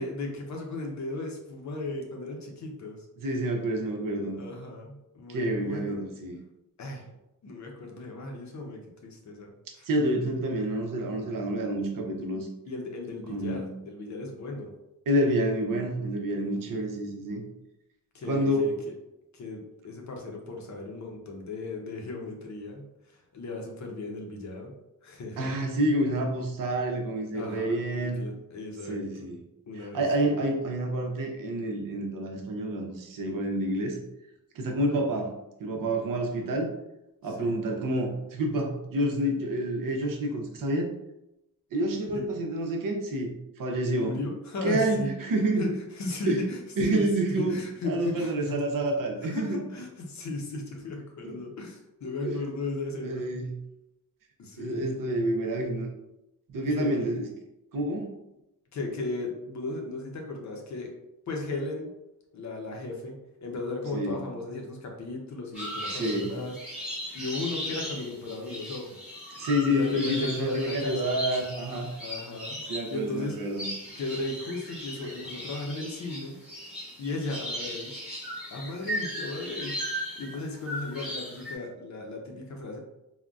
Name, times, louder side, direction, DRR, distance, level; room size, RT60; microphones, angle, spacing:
voice 1, 0.0-3.1 4.3-6.0 6.8-7.1 7.4-9.9 12.7-14.7 16.4-16.8 18.1-18.7 19.3-24.8 25.0-25.5 27.3-29.3 29.7-30.4 34.9-35.0 37.3-37.5 42.1-42.2 43.9-45.1 45.6-46.6 46.8-48.6 49.2-53.3 54.4-54.9 56.7-56.9 58.7-60.9 61.3-61.9 62.3-69.1 69.7-71.1 72.0-73.4 73.9-76.4 77.0-78.0 78.5-82.8, left 2 dB, 55° left, 1 dB, 0.6 m, -36 dB
voice 2, 3.2-4.4 5.3-6.4 9.8-12.5 13.3-13.7 15.1-17.4 18.3-18.7 25.4-28.2 28.8-29.4 29.7-34.0 34.5-35.3 35.6-36.7 37.2-40.9 41.7-44.2 44.6-45.7 46.3-46.4 46.8-47.6 47.8-49.5 51.2-51.4 52.2-52.4 53.0-53.5 54.6-55.9 56.5-57.3 57.7-58.2 63.9-64.2 65.9-66.4 69.4-71.9 72.7-73.7, right 1 dB, 65° right, 2 dB, 0.7 m, -28 dB
sound 1, 65.5-81.6, equal, 5° right, 1.0 m, -37 dB
3.7 x 2.1 x 2.3 m, 0.90 s
wide cardioid pair, 140°, 35 cm